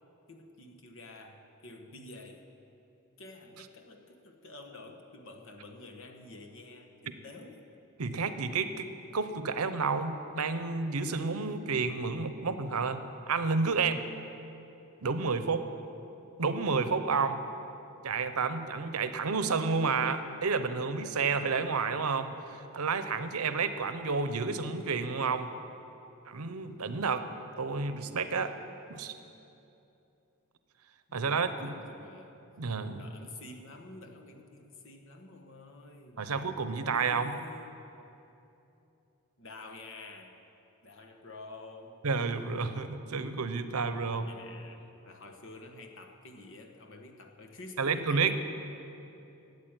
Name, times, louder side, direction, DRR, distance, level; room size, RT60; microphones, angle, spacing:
voice 1, 0.3-2.5 3.2-7.6 31.1-32.4 32.9-36.3 36.8-37.8 39.4-40.4 40.8-42.1 44.1-48.4, left 2 dB, 60° left, 3 dB, 1.3 m, -49 dB
voice 2, 8.0-8.9 9.1-13.0 13.3-14.0 15.0-15.6 16.4-17.4 18.0-25.5 26.3-27.3 27.6-28.5 28.9-29.1 31.1-31.8 32.6-33.0 36.2-37.3 42.0-44.3 47.8-48.3, right 4 dB, 85° right, 10 dB, 0.8 m, -30 dB
13.5 x 8.3 x 8.9 m, 2.8 s
head